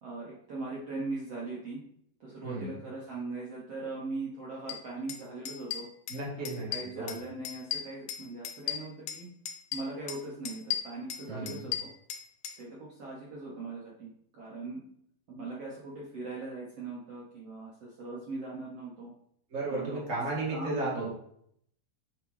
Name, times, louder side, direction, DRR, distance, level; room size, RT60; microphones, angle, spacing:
voice 1, 0.0-1.8 2.2-5.9 6.7-9.3 9.7-11.9 12.6-14.8 15.3-19.1 19.7-20.0 20.5-21.1, right 3 dB, 75° right, -5 dB, 1.4 m, -40 dB
sound 1, 4.7-4.8 5.1-5.2 5.4-6.2 6.4-7.2 7.4-9.2 9.5-10.2 10.4-12.6, left 10 dB, 80° left, 2.1 m, -35 dB
voice 2, 6.1-6.7 7.0-7.1 11.2-11.7 19.5-21.1, right 2 dB, 45° right, -5 dB, 0.9 m, -34 dB
9.2 x 4.9 x 3.2 m, 0.70 s
omnidirectional pair, 4.7 m